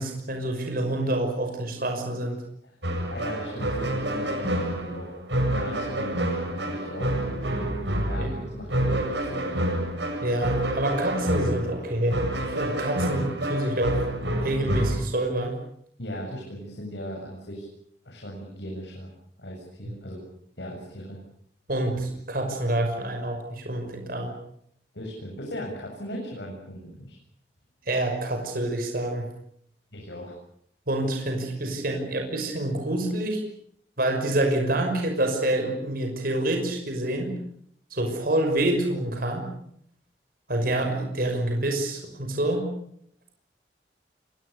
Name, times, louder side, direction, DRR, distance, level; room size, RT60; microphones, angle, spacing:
voice 1, 0.0-2.4 8.2-8.3 10.2-12.2 12.6-14.1 14.4-15.6 21.7-24.4 27.9-29.3 30.9-33.4 34.0-37.4 37.9-39.4 40.5-42.7, right 1 dB, 55° right, 3 dB, 6.0 m, -27 dB
voice 2, 2.6-5.2 5.5-7.7 8.1-9.7 16.0-17.7 18.0-19.1 19.4-20.2 20.6-21.2 24.9-27.2 29.9-30.3, equal, 80° left, 0 dB, 7.6 m, -38 dB
Funny Background Music Orchestra (Loop), 2.8-15.0, right 1 dB, 90° right, 7.7 m, -28 dB
28.5 x 24.0 x 6.8 m, 0.69 s
head